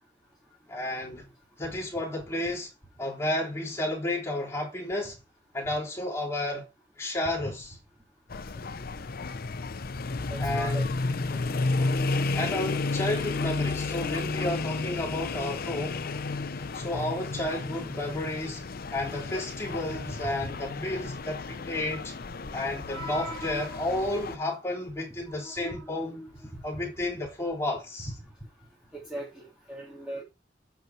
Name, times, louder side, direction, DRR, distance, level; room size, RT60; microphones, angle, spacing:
voice 1, 0.7-1.2 1.6-2.7 3.0-5.1 5.5-6.7 7.0-7.7 10.4-10.9 11.8-16.0 16.5-22.1 22.5-26.2 26.6-28.1, left 1 dB, 15° left, 3.4 m, -32 dB
sound 1, 8.3-24.4, left 3 dB, 55° left, 0.6 m, -32 dB
voice 2, 10.3-10.9 11.3-11.4 20.2-20.5 22.4-22.5 22.9-23.9 25.3-26.9 28.9-30.2, right 1 dB, 5° right, 3.0 m, -40 dB
8.3 x 6.0 x 4.3 m
head